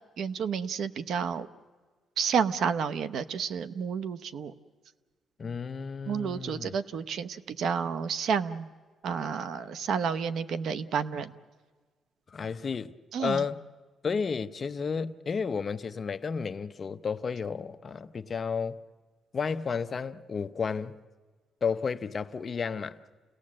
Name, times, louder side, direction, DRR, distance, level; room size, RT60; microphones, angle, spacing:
voice 1, 0.2-1.5 2.2-4.5 6.1-8.7 9.0-11.3 13.1-13.4, right 6 dB, 65° right, 0.8 m, -30 dB
voice 2, 5.4-6.8 12.3-13.6 14.0-18.8 19.3-21.0 21.6-23.0, left 5 dB, 35° left, 0.7 m, -32 dB
29.0 x 18.0 x 7.6 m
cardioid pair, 125°, 0 cm